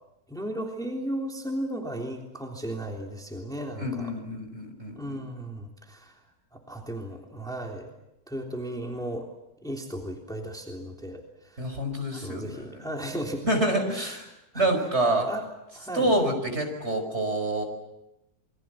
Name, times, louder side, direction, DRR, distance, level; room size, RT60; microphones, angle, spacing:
voice 1, 0.3-4.1 4.9-6.2 6.5-7.9 8.3-9.3 9.6-11.7 12.1-13.4 13.9-14.2 14.5-14.7 15.3-15.5 15.7-16.1, right 1 dB, ahead, 1 dB, 3.3 m, -35 dB
voice 2, 3.8-5.2 11.6-12.7 13.4-14.3 14.5-15.3 15.9-17.6, right 1 dB, 40° right, 5 dB, 5.8 m, -27 dB
28.0 x 23.5 x 7.7 m, 0.91 s
omnidirectional pair, 1.8 m